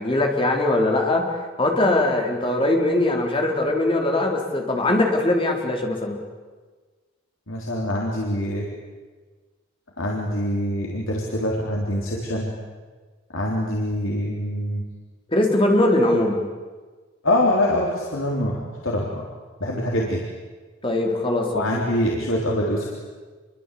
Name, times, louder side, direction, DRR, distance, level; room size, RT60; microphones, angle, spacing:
voice 1, 0.0-6.2 15.3-16.4 20.8-21.6, left 1 dB, 25° left, 1 dB, 4.0 m, -21 dB
voice 2, 7.5-8.7 10.0-12.5 13.3-14.9 17.2-19.2 19.6-20.2 21.5-22.9, left 1 dB, 75° left, -2 dB, 3.8 m, -24 dB
27.5 x 23.5 x 8.5 m, 1.4 s
head